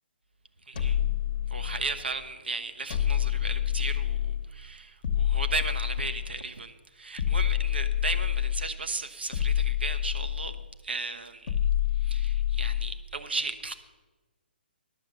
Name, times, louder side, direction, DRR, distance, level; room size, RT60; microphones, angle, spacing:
voice 1, 0.7-1.1 1.5-10.5 10.8-11.6 12.0-13.7, right 3 dB, 70° right, 8 dB, 1.0 m, -35 dB
sound 1, 0.8-2.1 2.9-4.5 5.0-6.5 7.2-8.8 9.3-10.7 11.5-13.1, left 11 dB, 50° left, 1.1 m, -28 dB
11.0 x 7.1 x 6.7 m, 1.2 s
figure-of-eight pair, 130°, 6 cm